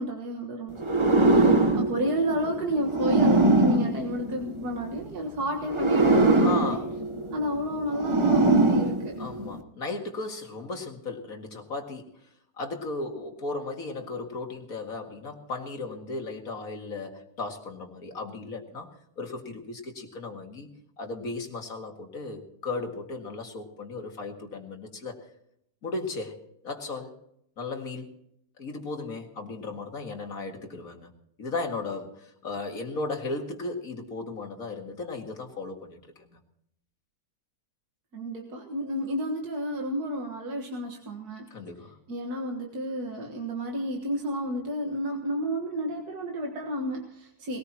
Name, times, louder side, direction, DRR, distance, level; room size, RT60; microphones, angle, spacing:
voice 1, 0.0-6.8 7.3-9.2 38.1-41.5 42.1-47.6, equal, 90° right, 1 dB, 2.1 m, -31 dB
sound 1, 0.8-4.9 5.6-9.6, right 2 dB, 20° right, 0.9 m, -22 dB
voice 2, 6.4-6.9 9.2-12.2 12.6-18.9 19.2-20.7 21.0-25.2 25.8-26.4 26.6-27.1 27.6-28.1 28.6-31.1 31.4-36.4 41.5-42.0, left 3 dB, 65° left, 3 dB, 2.4 m, -36 dB
20.5 x 18.5 x 2.9 m, 0.74 s
omnidirectional pair, 1.6 m